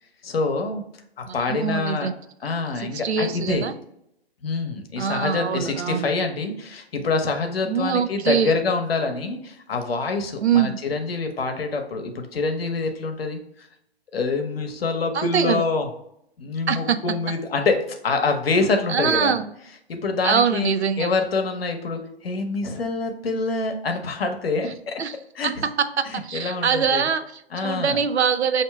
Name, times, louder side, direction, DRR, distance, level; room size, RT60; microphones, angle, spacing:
voice 1, 0.2-0.8 1.2-2.1 2.4-3.7 4.4-13.4 14.1-15.9 16.4-19.3 19.9-20.7 21.0-25.0 25.3-25.6 26.1-27.1 27.5-28.0, left 3 dB, 65° left, 5 dB, 0.9 m, -26 dB
voice 2, 1.3-2.1 2.8-3.7 5.0-6.1 7.6-8.5 10.4-10.8 15.1-15.6 16.7-17.0 18.9-19.5 20.2-21.1 25.0-25.1 25.8-28.6, right 7 dB, 85° right, 9 dB, 0.5 m, -23 dB
6.0 x 2.7 x 2.3 m, 0.77 s
figure-of-eight pair, 130°, 32 cm